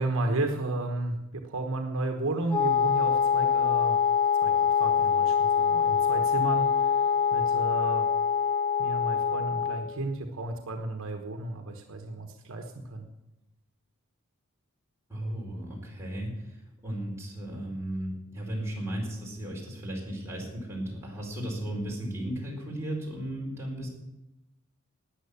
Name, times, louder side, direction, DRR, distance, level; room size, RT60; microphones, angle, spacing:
voice 1, 0.0-4.0 4.4-8.1 8.8-13.1, right 2 dB, 65° right, 4 dB, 1.1 m, -33 dB
Wind instrument woodwind instrument, 2.5-9.9, left 7 dB, 10° left, 2.0 m, -24 dB
voice 2, 15.1-16.6 16.8-23.9, right 1 dB, 15° right, -3 dB, 4.4 m, -35 dB
13.5 x 9.4 x 7.0 m, 0.98 s
head